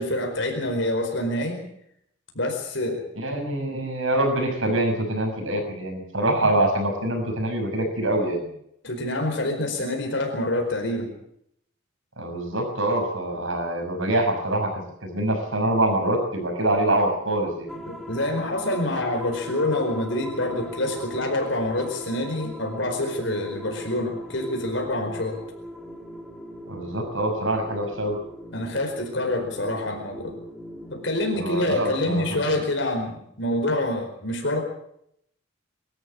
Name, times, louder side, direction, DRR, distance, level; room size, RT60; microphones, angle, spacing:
voice 1, 0.0-1.6 2.3-3.1 8.8-11.1 17.9-25.4 28.5-30.4 30.9-34.6, left 1 dB, 60° left, 3 dB, 4.8 m, -26 dB
voice 2, 3.2-8.5 12.2-17.7 26.6-28.2 31.3-32.5, right 1 dB, 70° right, 4 dB, 6.2 m, -25 dB
sound 1, 17.7-32.4, equal, ahead, 3.2 m, -40 dB
24.5 x 13.0 x 8.9 m, 0.73 s
head